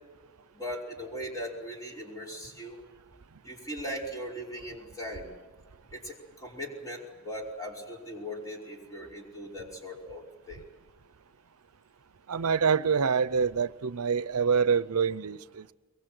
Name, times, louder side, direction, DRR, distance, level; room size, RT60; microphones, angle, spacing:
voice 1, 0.5-2.8 3.4-5.3 5.9-10.6, equal, 15° left, 5.3 m, -39 dB
voice 2, 12.3-15.7, right 6 dB, 90° right, 0.6 m, -26 dB
23.0 x 22.5 x 7.9 m
head